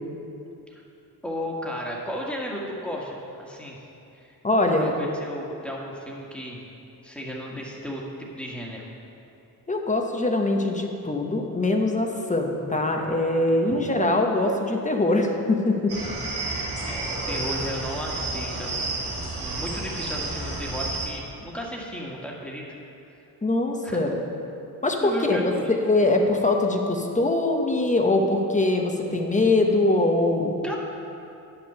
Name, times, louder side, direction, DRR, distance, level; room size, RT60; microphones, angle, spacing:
voice 1, 1.2-3.8 4.2-4.4 4.8-6.6 7.0-8.9 13.7-13.8 16.8-18.8 19.4-22.6 23.8-24.2 25.0-25.7 30.6-30.8, equal, 5° left, -3 dB, 1.8 m, -34 dB
voice 2, 4.4-4.9 9.7-15.9 23.4-24.2 24.8-25.5 25.8-30.5, left 2 dB, 20° left, 2 dB, 1.1 m, -23 dB
sound 1, 15.9-21.1, right 2 dB, 85° right, 2.0 m, -31 dB
9.7 x 5.8 x 6.8 m, 2.8 s
cardioid pair, 95°, 39 cm